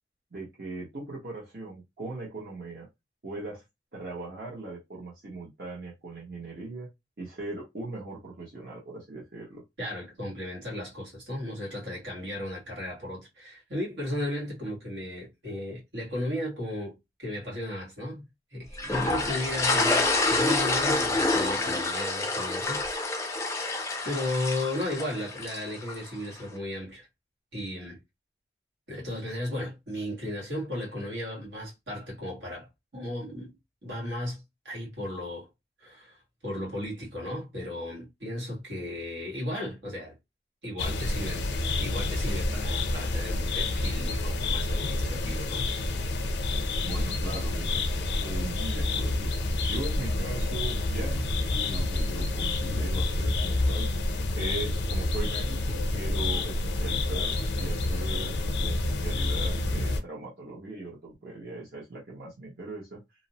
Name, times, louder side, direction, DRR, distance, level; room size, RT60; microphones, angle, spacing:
voice 1, 0.3-2.9 3.2-3.6 3.9-6.9 7.2-9.6 46.8-49.3 49.6-53.9 54.3-63.0, right 3 dB, 60° right, 0.9 m, -39 dB
voice 2, 9.8-18.3 18.5-22.9 23.2-23.6 24.0-27.1 27.5-28.0 28.9-33.5 33.8-35.5 35.8-36.2 36.4-40.1 40.6-41.5 41.8-45.7, left 1 dB, 85° right, 1.5 m, -35 dB
sound 1, 18.8-26.1, left 2 dB, 15° left, 0.4 m, -27 dB
sound 2, 40.8-60.0, left 2 dB, 75° left, 0.5 m, -28 dB
2.7 x 2.0 x 2.7 m
head